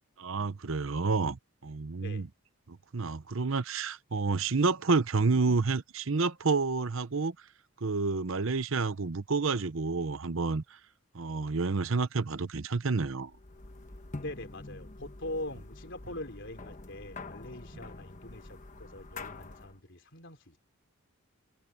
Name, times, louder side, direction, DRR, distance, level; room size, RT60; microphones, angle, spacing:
voice 1, 0.2-2.3 2.7-7.5 7.8-10.8 11.1-13.3, right 4 dB, 60° right, 0.8 m, -29 dB
sound 1, 13.3-19.8, left 2 dB, 35° left, 1.2 m, -46 dB
voice 2, 14.2-20.6, left 1 dB, 55° left, 3.8 m, -42 dB
head